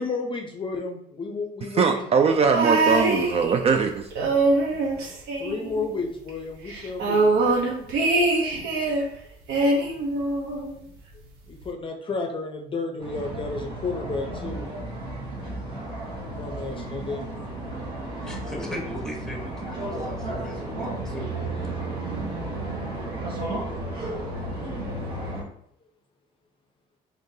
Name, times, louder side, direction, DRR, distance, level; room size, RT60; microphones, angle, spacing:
voice 1, 0.0-2.1 5.4-7.3 11.5-14.7 16.4-17.2 23.8-23.9, left 3 dB, 30° left, 2 dB, 0.6 m, -32 dB
voice 2, 1.6-4.1, right 5 dB, 35° right, 6 dB, 0.3 m, -21 dB
sound 1, 2.5-3.8 4.1-6.0 6.3-6.4 6.7-9.1 9.5-10.7 11.6-11.7, right 2 dB, 90° right, 0.9 m, -23 dB
sound 2, 13.0-25.4, right 2 dB, 70° right, 1.4 m, -33 dB
voice 3, 18.2-21.5, left 1 dB, 5° left, 0 dB, 1.0 m, -39 dB
3.7 x 3.5 x 2.7 m, 0.72 s
cardioid pair, 110°, 17 cm